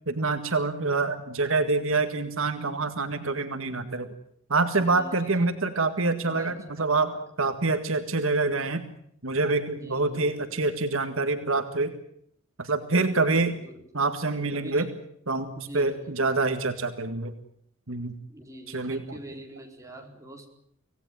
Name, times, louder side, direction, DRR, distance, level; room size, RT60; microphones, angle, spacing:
voice 1, 0.1-4.1 4.5-8.8 9.2-11.9 12.6-13.5 13.9-14.9 15.3-17.3 17.9-18.1 18.7-19.0, right 3 dB, 65° right, 7 dB, 1.9 m, -26 dB
voice 2, 4.8-5.5 6.2-7.2 9.7-10.6 13.0-13.9 14.5-15.0 15.5-16.2 18.3-20.5, right 1 dB, 15° right, 2 dB, 4.5 m, -45 dB
26.0 x 18.0 x 9.2 m, 0.70 s
head